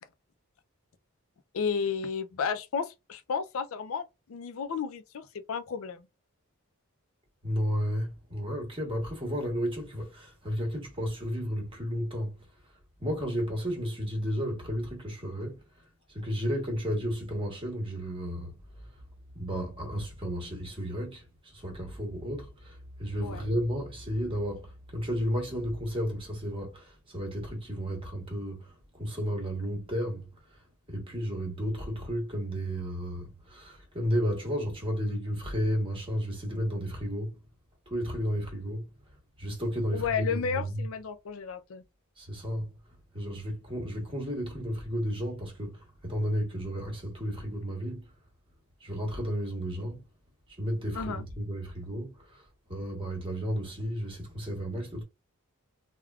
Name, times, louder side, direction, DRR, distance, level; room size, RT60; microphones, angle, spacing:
voice 1, 1.5-6.1 23.2-23.4 39.9-41.8 51.0-51.2, left 6 dB, 65° left, 0.4 m, -32 dB
voice 2, 7.4-12.5 13.0-15.6 16.1-18.9 19.3-30.6 30.9-37.4 37.9-38.9 39.4-40.9 42.2-42.7 43.1-48.1 48.8-50.0 50.5-55.0, equal, 25° right, 1.1 m, -33 dB
3.4 x 2.2 x 2.3 m
head